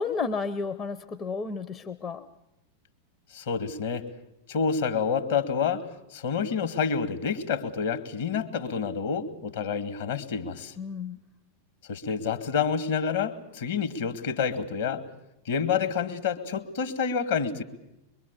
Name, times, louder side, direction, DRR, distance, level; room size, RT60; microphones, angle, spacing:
voice 1, 0.0-2.3 10.8-11.2, left 4 dB, 30° left, 11 dB, 0.8 m, -32 dB
voice 2, 3.3-4.1 4.5-10.7 11.9-15.0 15.5-17.6, left 6 dB, 60° left, 7 dB, 2.0 m, -28 dB
23.5 x 23.0 x 7.1 m, 0.90 s
figure-of-eight pair, 90°, 0 cm